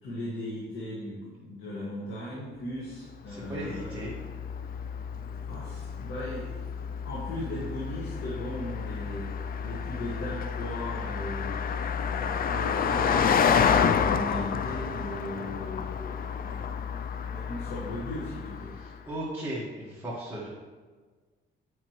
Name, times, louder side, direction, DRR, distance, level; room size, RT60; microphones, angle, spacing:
voice 1, 0.0-4.1 5.5-6.6 7.0-9.3 9.6-11.6 12.0-18.7, left 1 dB, 75° left, -6 dB, 1.8 m, -38 dB
Car passing by, 3.3-19.0, left 7 dB, 45° left, 0.4 m, -30 dB
voice 2, 3.3-4.1 18.8-20.5, right 1 dB, 10° right, -8 dB, 1.6 m, -36 dB
8.5 x 5.8 x 3.1 m, 1.4 s
cardioid pair, 90°, 20 cm